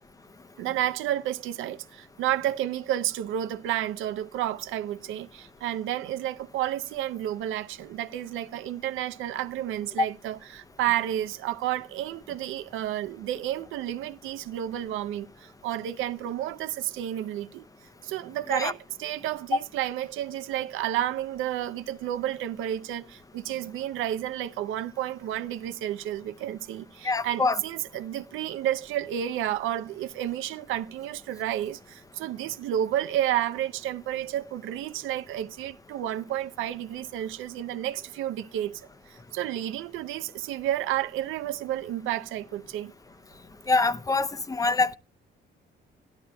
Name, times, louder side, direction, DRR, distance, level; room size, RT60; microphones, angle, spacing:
voice 1, 0.6-17.7 18.0-42.9, right 12 dB, 90° right, 0.6 m, -31 dB
voice 2, 27.0-27.6 43.7-44.9, left 3 dB, 15° left, 0.6 m, -25 dB
16.5 x 11.5 x 2.2 m
cardioid pair, 90°, 20 cm